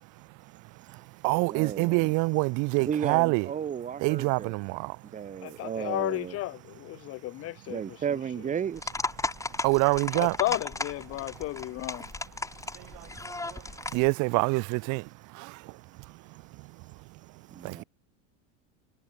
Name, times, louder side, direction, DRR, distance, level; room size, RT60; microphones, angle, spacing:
voice 1, 0.5-3.5 4.0-5.0 9.6-10.4 12.7-16.9 17.6-17.8, right 27 dB, 50° right, 1.1 m, -28 dB
voice 2, 1.5-2.1 2.8-4.6 5.1-6.4 7.7-8.9 17.5-17.8, right 8 dB, 20° right, 1.2 m, -33 dB
voice 3, 5.4-8.0 10.1-12.1, left 17 dB, 35° left, 1.1 m, -33 dB
sound 1, 8.8-14.1, left 3 dB, 10° left, 3.3 m, -35 dB
supercardioid pair, 140°, 39 cm